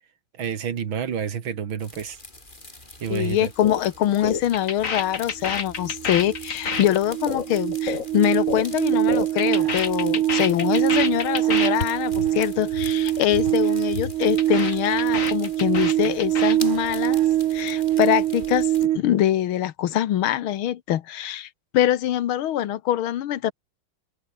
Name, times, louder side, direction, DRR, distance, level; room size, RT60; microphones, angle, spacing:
voice 1, 0.4-2.2 3.0-3.5, right 7 dB, 70° right, 2.5 m, -29 dB
sound 1, 1.8-18.9, left 2 dB, 20° left, 3.6 m, -45 dB
voice 2, 3.1-17.2 17.5-23.5, left 12 dB, 80° left, 1.9 m, -24 dB
sound 2, 3.6-3.8 4.1-8.7 8.9-11.9 12.1-12.3 12.6-12.9 13.2-13.5 13.8-16.6, left 5 dB, 40° left, 2.1 m, -29 dB
sound 3, 5.4-5.5 5.8-19.0, right 13 dB, 85° right, 1.8 m, -24 dB
open air
omnidirectional pair, 2.3 m